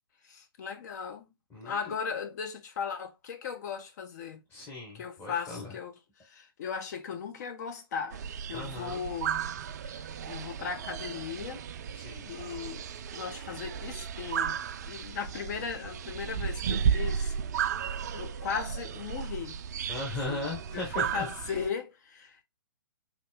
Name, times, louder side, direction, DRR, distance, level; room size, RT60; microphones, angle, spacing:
voice 1, 0.2-1.3 1.6-4.4 4.9-5.9 6.2-8.2 8.5-9.4 9.8-11.6 12.2-12.8 13.1-17.3 17.6-19.6 20.3-20.4 20.7-22.4, left 6 dB, 45° left, 1.0 m, -37 dB
voice 2, 4.5-5.7 8.5-9.0 11.9-12.3 19.9-21.3, left 2 dB, 15° left, 1.5 m, -37 dB
sound 1, 8.1-21.7, right 7 dB, 45° right, 0.3 m, -34 dB
4.1 x 3.7 x 2.2 m
figure-of-eight pair, 125°, 13 cm